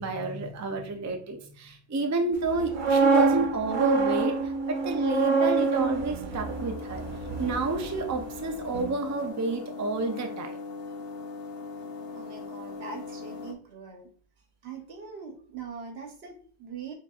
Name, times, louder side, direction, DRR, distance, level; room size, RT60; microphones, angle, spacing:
voice 1, 0.0-7.0 7.4-10.6, right 3 dB, 30° right, 4 dB, 0.3 m, -30 dB
sound 1, 2.5-8.4 8.7-9.0, right 3 dB, 60° right, 0.7 m, -26 dB
sound 2, 6.3-13.5, left 4 dB, 75° left, 0.8 m, -40 dB
voice 2, 12.1-14.1 14.6-16.9, right 5 dB, 85° right, 4 dB, 1.1 m, -42 dB
5.8 x 2.6 x 2.3 m, 0.44 s
omnidirectional pair, 1.0 m